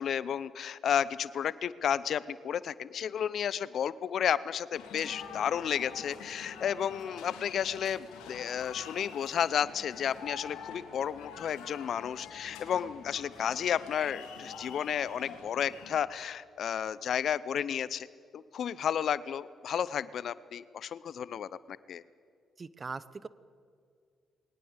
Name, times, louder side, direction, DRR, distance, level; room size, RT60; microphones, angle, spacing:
voice 1, 0.0-18.1 18.3-22.0, left 8 dB, 65° left, 19 dB, 0.7 m, -32 dB
sound 1, 4.7-16.0, left 6 dB, 80° left, 2.8 m, -46 dB
voice 2, 22.6-23.3, right 4 dB, 40° right, 18 dB, 0.9 m, -40 dB
21.0 x 18.5 x 8.1 m, 2.2 s
hypercardioid pair, 50°, 0 cm